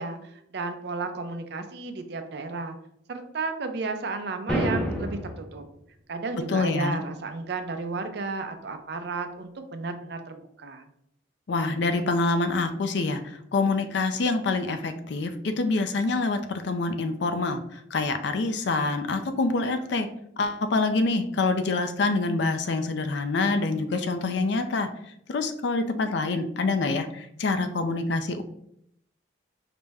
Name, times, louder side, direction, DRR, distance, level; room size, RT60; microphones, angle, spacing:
voice 1, 0.0-2.8 3.1-5.6 6.1-10.9, right 3 dB, 55° right, 7 dB, 0.5 m, -33 dB
sound 1, 4.5-5.5, equal, 5° left, 0.5 m, -27 dB
voice 2, 6.5-7.0 11.5-20.1 20.4-24.9 25.3-28.4, left 3 dB, 65° left, 8 dB, 0.4 m, -26 dB
4.9 x 2.1 x 3.3 m, 0.72 s
head